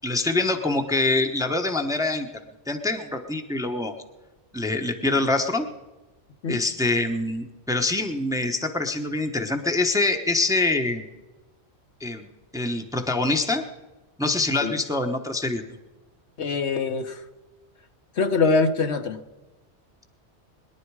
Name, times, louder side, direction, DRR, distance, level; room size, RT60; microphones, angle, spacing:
voice 1, 0.0-2.3 2.7-3.9 4.5-5.7 6.5-11.0 12.0-12.3 12.5-13.6 14.2-15.6, left 2 dB, 5° right, 5 dB, 1.0 m, -25 dB
voice 2, 16.4-17.2 18.2-19.2, left 4 dB, 70° left, 7 dB, 1.3 m, -23 dB
21.5 x 11.0 x 4.8 m, 1.1 s
omnidirectional pair, 1.2 m